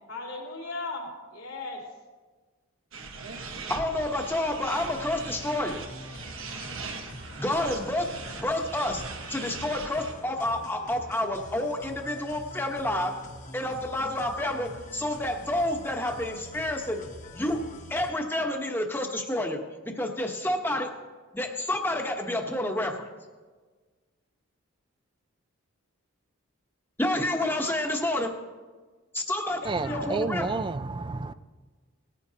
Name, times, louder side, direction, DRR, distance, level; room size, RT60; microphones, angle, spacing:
voice 1, 0.1-1.9 6.7-6.9 29.6-30.1, left 3 dB, 80° left, 3.4 m, -37 dB
sound 1, 2.9-10.1, right 4 dB, 70° right, 1.4 m, -40 dB
voice 2, 3.7-5.8 7.4-8.0 8.4-9.0 9.3-13.2 13.5-17.1 17.3-17.6 17.9-20.9 21.3-23.1 27.0-28.3 29.1-30.5, left 1 dB, 10° left, 1.0 m, -29 dB
sound 2, 4.9-18.1, left 2 dB, 35° left, 1.0 m, -45 dB
voice 3, 29.6-31.3, right 3 dB, 20° right, 0.3 m, -30 dB
19.0 x 14.0 x 2.8 m
head